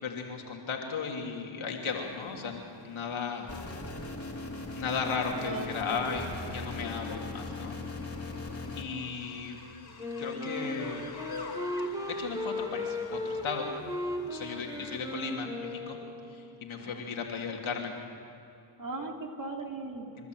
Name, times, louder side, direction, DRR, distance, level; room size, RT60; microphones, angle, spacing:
voice 1, 0.0-3.5 4.2-4.3 4.7-7.8 8.8-9.6 10.2-11.0 12.1-13.7 14.2-16.0 16.3-17.9 20.2-20.3, left 5 dB, 75° left, 1 dB, 3.2 m, -35 dB
sound 1, 1.8-15.2, left 4 dB, 50° left, 3.5 m, -49 dB
sound 2, 3.5-8.8, left 2 dB, 30° left, 3.5 m, -39 dB
voice 2, 5.4-6.6 14.5-14.8 16.8-17.0 18.8-20.1, right 2 dB, 45° right, 2 dB, 3.2 m, -40 dB
Wind instrument woodwind instrument, 10.0-16.6, left 1 dB, 5° right, 2.9 m, -36 dB
29.0 x 12.5 x 8.0 m, 2.7 s
cardioid pair, 55°, 48 cm